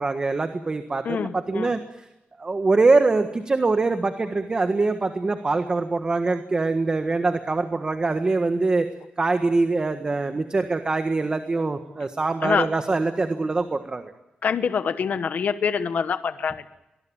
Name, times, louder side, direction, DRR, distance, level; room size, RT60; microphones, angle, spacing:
voice 1, 0.0-1.8 2.4-8.9 9.2-14.1, right 3 dB, 30° right, 7 dB, 1.5 m, -23 dB
voice 2, 1.0-1.7 12.4-12.7 14.4-16.7, left 6 dB, 60° left, 10 dB, 1.1 m, -25 dB
23.5 x 21.0 x 8.8 m, 0.94 s
wide cardioid pair, 125°, 3 cm